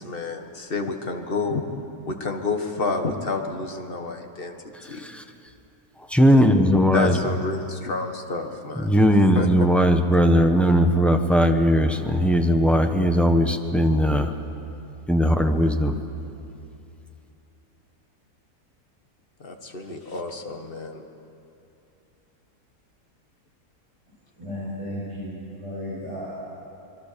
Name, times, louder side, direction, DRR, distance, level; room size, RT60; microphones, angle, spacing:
voice 1, 0.0-1.6 2.1-4.6 4.9-5.1 6.9-8.9 9.4-9.5 19.4-21.0, left 3 dB, 35° left, 4 dB, 1.8 m, -29 dB
voice 2, 6.1-7.2 8.7-14.3 15.1-15.9, equal, ahead, 5 dB, 1.0 m, -19 dB
voice 3, 24.4-26.3, equal, 20° right, -10 dB, 8.1 m, -34 dB
26.5 x 22.0 x 6.9 m, 2.8 s
omnidirectional pair, 1.7 m